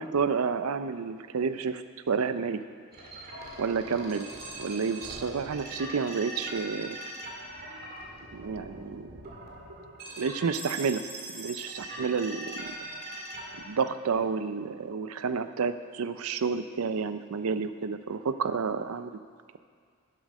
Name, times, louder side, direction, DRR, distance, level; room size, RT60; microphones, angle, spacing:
voice 1, 0.0-1.8 2.1-2.6 3.6-4.3 4.6-7.0 8.3-9.1 10.2-11.0 11.3-12.7 13.6-19.2, right 5 dB, 80° right, 11 dB, 0.5 m, -30 dB
sound 1, 2.9-13.7, right 1 dB, 45° right, 2.0 m, -41 dB
11.0 x 7.8 x 5.3 m, 2.1 s
head